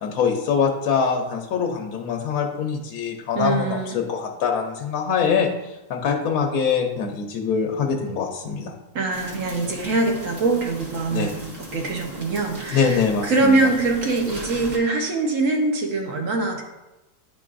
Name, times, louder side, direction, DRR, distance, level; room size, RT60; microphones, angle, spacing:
voice 1, 0.0-5.5 5.9-8.7 11.1-11.3 12.7-13.6, left 6 dB, 70° left, 1 dB, 1.1 m, -23 dB
voice 2, 3.3-4.0 8.9-11.3 11.7-16.6, right 3 dB, 55° right, 2 dB, 1.1 m, -23 dB
sound 1, 9.1-14.8, equal, 35° right, 1.2 m, -38 dB
10.0 x 3.9 x 2.5 m, 1.0 s
omnidirectional pair, 1.8 m